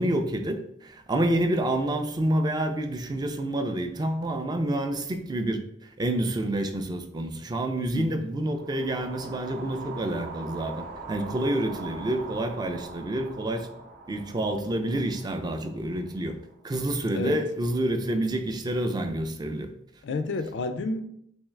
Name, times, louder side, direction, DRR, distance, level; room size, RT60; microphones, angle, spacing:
voice 1, 0.0-5.6 6.0-13.7 14.1-16.3 16.6-19.7, right 1 dB, 20° right, 0.3 m, -28 dB
voice 2, 7.9-8.3 17.1-17.4 20.0-21.0, left 2 dB, 70° left, 0.4 m, -30 dB
sound 1, 8.4-16.7, right 3 dB, 60° right, 0.6 m, -42 dB
3.5 x 3.0 x 3.2 m
head